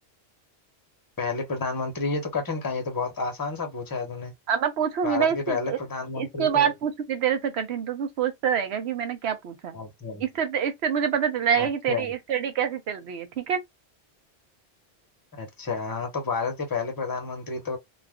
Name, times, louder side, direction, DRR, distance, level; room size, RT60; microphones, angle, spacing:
voice 1, 1.2-4.3 5.0-6.7 9.7-10.2 11.6-12.1 15.4-17.8, left 4 dB, 20° left, 0.7 m, -30 dB
voice 2, 4.5-5.8 6.2-9.8 10.2-13.6, right 8 dB, 75° right, 0.9 m, -26 dB
2.4 x 2.4 x 3.4 m
omnidirectional pair, 1.1 m